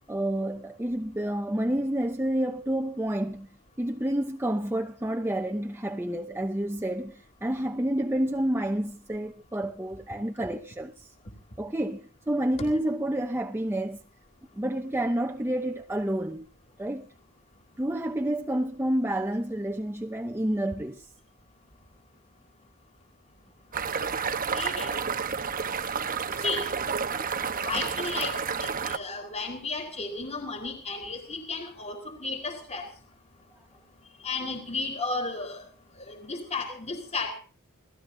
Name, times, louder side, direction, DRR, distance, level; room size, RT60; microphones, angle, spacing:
voice 1, 0.1-3.5 3.8-11.1 11.6-14.0 14.5-16.5 16.8-17.1 17.8-21.1, right 1 dB, 10° right, 0.8 m, -29 dB
sound 1, 23.7-29.0, right 6 dB, 40° right, 1.1 m, -30 dB
voice 2, 24.2-24.9 26.4-26.7 27.6-32.9 34.2-35.6 36.1-37.4, left 3 dB, 30° left, 3.7 m, -33 dB
28.0 x 17.5 x 2.7 m
head